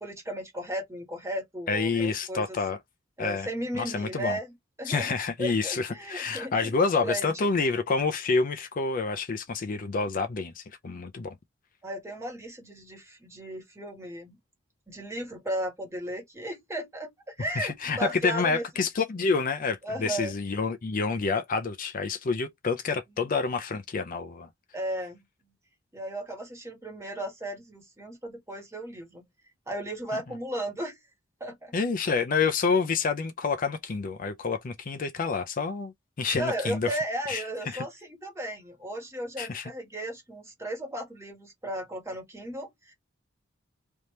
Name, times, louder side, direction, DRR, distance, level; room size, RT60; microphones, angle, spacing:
voice 1, 0.0-2.6 3.2-4.5 4.8-6.7 7.0-7.5 11.8-14.4 14.9-17.1 17.4-18.6 19.8-20.3 24.7-25.2 25.9-29.2 29.7-31.0 31.4-31.7 36.4-42.9, right 1 dB, 15° right, 1.4 m, -35 dB
voice 2, 1.7-2.8 3.2-3.5 3.7-4.4 4.9-11.4 17.6-24.5 31.7-35.9 36.2-37.0 37.3-37.9 39.4-39.7, left 4 dB, 45° left, 0.5 m, -28 dB
3.4 x 2.8 x 3.0 m
head